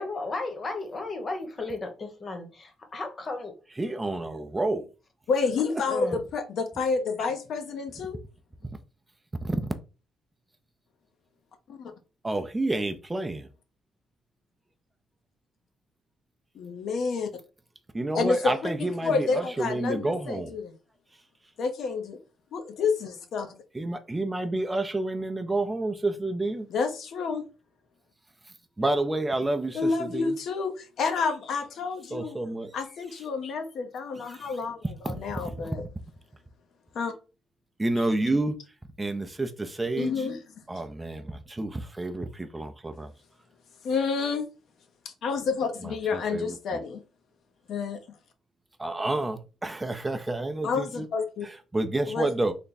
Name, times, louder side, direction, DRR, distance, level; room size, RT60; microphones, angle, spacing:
voice 1, 0.0-3.5 5.6-6.2, left 3 dB, 40° left, 1.0 m, -34 dB
voice 2, 3.8-4.9 12.2-13.5 17.9-20.5 23.7-26.7 28.8-30.3 32.1-32.7 34.3-34.5 35.0-35.2 35.6-35.8 37.8-38.6 39.0-40.2 40.7-43.1 45.8-46.6 48.8-51.1 51.4-52.5, right 2 dB, 15° right, 0.4 m, -29 dB
voice 3, 5.3-8.2 11.7-11.9 16.5-17.3 18.1-18.5 18.8-20.7 21.6-22.2 22.5-23.5 26.7-27.4 29.7-32.4 32.7-35.9 36.9-37.1 38.0-38.1 40.0-40.4 43.8-44.5 45.0-47.0 47.7-48.0 50.6-51.5 52.1-52.3, left 4 dB, 70° left, 0.7 m, -29 dB
3.4 x 2.2 x 4.0 m
cardioid pair, 90°, 0 cm